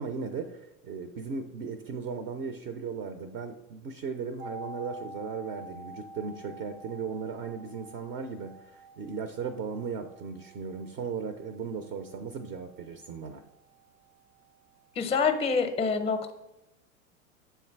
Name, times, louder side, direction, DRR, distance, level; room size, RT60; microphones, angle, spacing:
voice 1, 0.0-13.4, right 5 dB, 30° right, 8 dB, 0.4 m, -37 dB
sound 1, 4.4-14.1 14.4-14.5, equal, 70° right, 0.6 m, -48 dB
voice 2, 15.0-16.3, left 5 dB, 15° left, 8 dB, 0.6 m, -26 dB
7.0 x 3.3 x 4.5 m, 0.91 s
hypercardioid pair, 95°, 40 cm